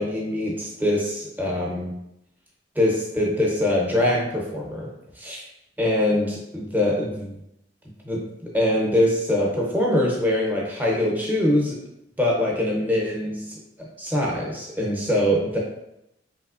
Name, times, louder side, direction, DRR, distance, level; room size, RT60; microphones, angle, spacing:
voice 1, 0.0-1.9 2.8-4.9 5.2-5.4 5.8-7.4 8.0-8.2 8.5-11.8 12.2-13.6 14.0-15.6, left 1 dB, 10° right, -3 dB, 0.7 m, -23 dB
3.3 x 3.1 x 2.4 m, 0.83 s
head